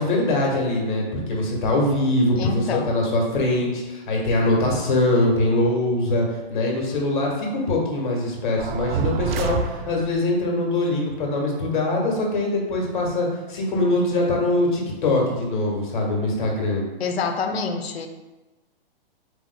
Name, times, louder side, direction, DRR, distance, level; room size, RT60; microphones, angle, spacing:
voice 1, 0.0-16.8, left 2 dB, 55° left, -1 dB, 1.6 m, -23 dB
voice 2, 2.4-2.9 17.0-18.1, left 4 dB, 85° left, 5 dB, 0.8 m, -27 dB
sound 1, 8.6-10.3, right 5 dB, 70° right, 0.5 m, -27 dB
8.2 x 2.9 x 2.2 m, 1.1 s
hypercardioid pair, 165°, 30 cm